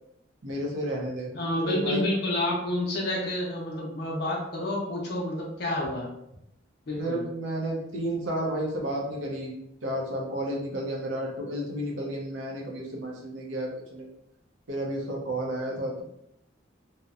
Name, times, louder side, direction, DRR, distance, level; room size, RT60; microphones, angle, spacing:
voice 1, 0.4-1.3 1.6-2.0 6.9-9.5 9.8-14.1 14.7-16.0, right 1 dB, 80° right, -1 dB, 0.6 m, -31 dB
voice 2, 1.3-6.1 6.9-7.2, left 1 dB, 55° left, -2 dB, 0.5 m, -29 dB
2.7 x 2.0 x 2.3 m, 0.82 s
head